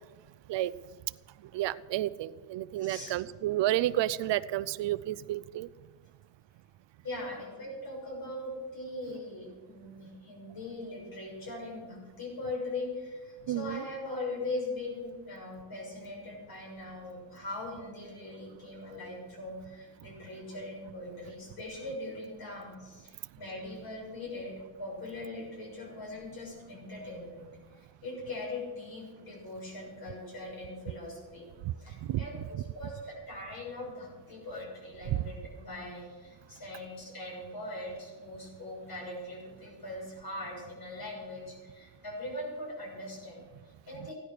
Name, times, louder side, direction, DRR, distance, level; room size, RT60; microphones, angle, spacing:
voice 1, 1.5-5.7 13.5-13.8 32.1-32.2 35.1-35.2, right 14 dB, 65° right, 16 dB, 0.5 m, -30 dB
voice 2, 2.8-3.1 7.0-24.5 24.8-27.5 27.7-31.5 31.8-44.1, left 2 dB, 45° left, -1 dB, 6.4 m, -41 dB
16.0 x 11.0 x 6.5 m, 1.3 s
cardioid pair, 150°, 48 cm